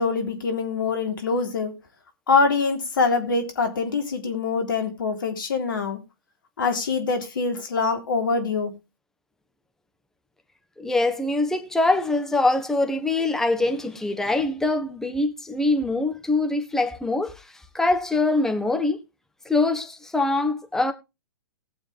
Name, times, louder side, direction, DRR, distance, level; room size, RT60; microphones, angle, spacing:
voice 1, 0.0-1.7 2.3-6.0 6.6-8.7, left 4 dB, 65° left, 3.6 m, -24 dB
voice 2, 10.8-17.4 17.7-19.0 19.4-20.9, left 2 dB, 5° left, 1.4 m, -23 dB
19.0 x 7.4 x 3.4 m
figure-of-eight pair, 115°, 12 cm